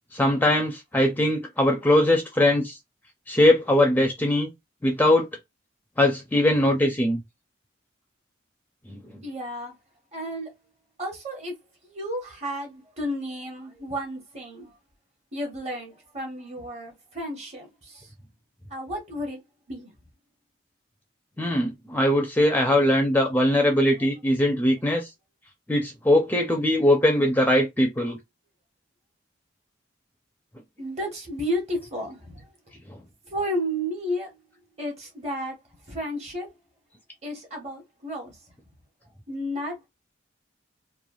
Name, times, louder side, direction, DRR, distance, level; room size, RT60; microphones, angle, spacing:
voice 1, 0.1-2.8 3.3-4.5 4.8-5.3 6.0-7.2 8.9-9.0 21.4-25.1 25.7-28.2 32.9-33.0, left 1 dB, 10° left, 0.4 m, -21 dB
voice 2, 9.2-9.7 10.1-10.5 11.0-11.5 11.8-14.7 15.3-18.1 18.7-19.4 19.7-19.9 30.8-32.5 33.3-34.3 34.8-35.6 35.9-36.5 37.2-38.4 39.3-39.9, equal, 35° right, 1.1 m, -32 dB
3.1 x 2.3 x 2.3 m
head